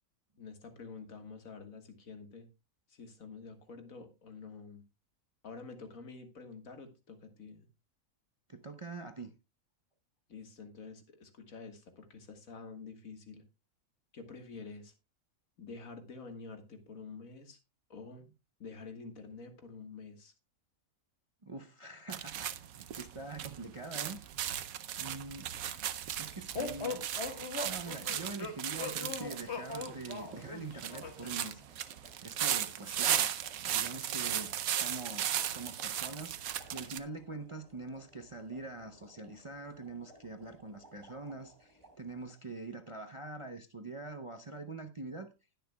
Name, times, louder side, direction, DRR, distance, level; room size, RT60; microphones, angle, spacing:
voice 1, 0.4-2.5 2.9-4.8 5.4-7.7 10.3-13.4 14.1-14.9 15.6-17.6 17.9-18.2 18.6-20.3, left 4 dB, 75° left, 2.0 m, -48 dB
voice 2, 8.5-9.3 21.4-24.2 25.0-25.5 26.2-27.1 27.6-31.8 32.2-33.3 33.6-45.3, right 3 dB, 30° right, 0.6 m, -44 dB
sound 1, 22.1-37.0, right 10 dB, 80° right, 1.2 m, -36 dB
sound 2, 26.5-31.4, left 4 dB, 50° left, 1.6 m, -40 dB
sound 3, 30.8-42.3, right 2 dB, 15° right, 4.0 m, -61 dB
20.0 x 6.7 x 2.3 m
omnidirectional pair, 1.5 m